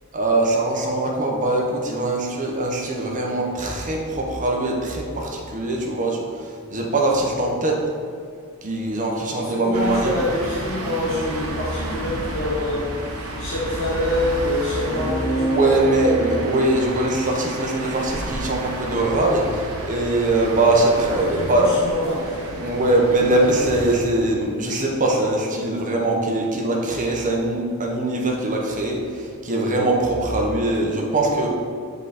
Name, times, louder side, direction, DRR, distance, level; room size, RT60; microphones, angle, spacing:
voice 1, 0.1-7.8 8.6-10.1 14.9-21.7 22.6-31.5, right 2 dB, 35° right, -1 dB, 1.0 m, -22 dB
voice 2, 9.3-15.8 21.1-22.7, left 1 dB, 60° left, -7 dB, 1.3 m, -26 dB
sound 1, 9.7-24.0, right 1 dB, 80° right, 1.0 m, -31 dB
7.3 x 4.0 x 4.2 m, 2.2 s
head